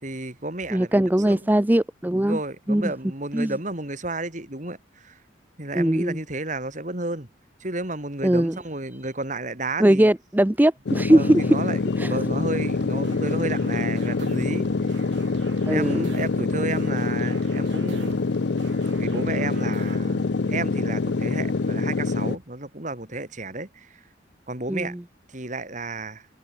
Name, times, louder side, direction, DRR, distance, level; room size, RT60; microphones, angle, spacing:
voice 1, 0.0-1.4 2.2-5.2 5.6-7.3 7.6-10.1 11.1-14.9 15.7-18.2 19.0-24.0 24.5-24.9 25.3-26.3, right 2 dB, 40° right, 3.1 m, -32 dB
voice 2, 0.7-2.4 2.7-2.9 3.3-3.5 5.7-6.2 8.2-8.6 9.8-11.6 12.0-12.2 15.7-16.1 24.7-24.9, right 1 dB, 10° right, 0.5 m, -20 dB
sound 1, 10.9-22.4, left 3 dB, 65° left, 0.6 m, -25 dB
sound 2, 12.6-20.0, right 3 dB, 75° right, 4.4 m, -46 dB
head